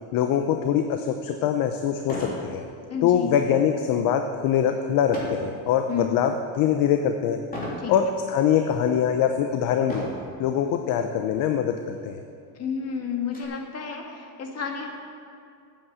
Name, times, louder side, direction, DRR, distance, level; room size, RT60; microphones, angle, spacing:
voice 1, 0.1-2.6 3.0-7.4 7.9-10.0 10.4-12.2, left 8 dB, 50° left, 6 dB, 0.8 m, -23 dB
sound 1, 1.1-1.2 2.0-2.5 2.9-3.2 5.1-5.5 6.1-6.5 7.5-7.9 8.6-8.7 9.8-10.3 11.3-11.5 11.8-11.9 12.3-13.4, left 1 dB, 20° left, 3.4 m, -34 dB
voice 2, 2.9-3.4 5.9-6.2 7.8-7.9 12.6-15.0, left 6 dB, 35° left, 2 dB, 1.8 m, -31 dB
9.4 x 8.6 x 8.0 m, 2.4 s
cardioid pair, 135°, 42 cm